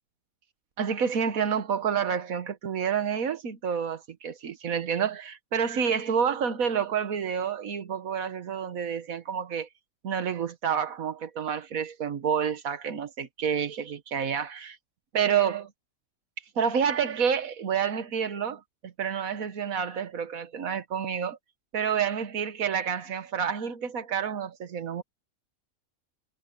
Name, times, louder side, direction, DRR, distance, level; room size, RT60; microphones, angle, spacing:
voice 1, 0.8-9.7 10.0-14.7 15.1-15.7 16.5-21.4 21.7-25.0, right 7 dB, 85° right, 1.6 m, -29 dB
omnidirectional pair, 1.4 m